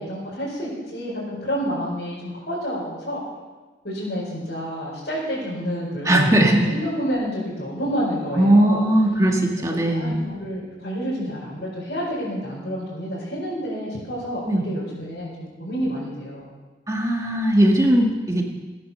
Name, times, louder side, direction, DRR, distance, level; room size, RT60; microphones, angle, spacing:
voice 1, 0.0-3.2 3.8-8.8 9.7-16.5, equal, 60° left, -10 dB, 5.4 m, -29 dB
voice 2, 6.1-6.6 8.4-10.2 14.5-14.6 16.9-18.4, right 1 dB, 15° right, 0 dB, 1.8 m, -18 dB
17.5 x 9.7 x 6.9 m, 1.3 s
head